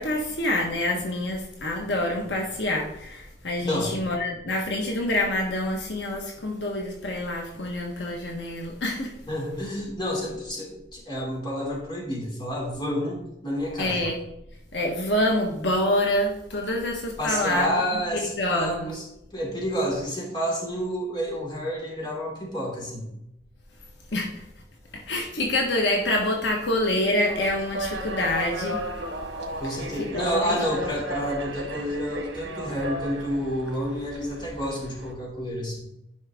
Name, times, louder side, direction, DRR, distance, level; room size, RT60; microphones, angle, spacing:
voice 1, 0.0-9.1 13.8-14.2 14.7-17.7 18.4-18.9 24.1-24.4 24.9-28.8 30.0-30.6, left 1 dB, 75° left, 0 dB, 1.5 m, -26 dB
voice 2, 9.3-14.1 17.2-19.0 19.3-23.1 29.6-35.8, equal, 25° left, -3 dB, 3.1 m, -29 dB
sound 1, 27.3-35.1, right 1 dB, 75° right, 1.6 m, -35 dB
10.5 x 5.6 x 3.7 m, 0.83 s
head